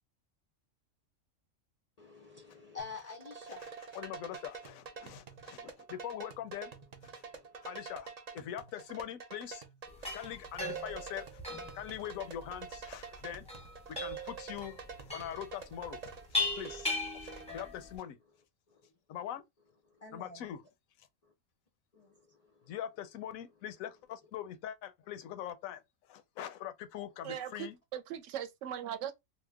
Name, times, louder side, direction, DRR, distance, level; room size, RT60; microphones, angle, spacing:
voice 1, 2.0-4.0 7.1-7.7 9.9-10.0 17.3-17.5 18.7-18.9 19.9-20.5 21.2-21.3 21.9-22.8, left 5 dB, 65° left, 0.4 m, -49 dB
sound 1, 2.8-17.7, right 5 dB, 55° right, 0.4 m, -48 dB
voice 2, 3.9-6.7 7.1-7.2 7.6-9.6 10.0-11.4 11.7-13.6 13.9-16.0 16.3-18.2 19.1-19.4 20.1-20.6 22.7-25.8 26.1-27.7, left 10 dB, 85° left, 1.0 m, -42 dB
sound 2, 9.9-18.0, left 2 dB, 5° left, 0.5 m, -39 dB
voice 3, 27.2-29.1, right 10 dB, 70° right, 0.9 m, -39 dB
2.9 x 2.1 x 3.3 m
omnidirectional pair, 1.4 m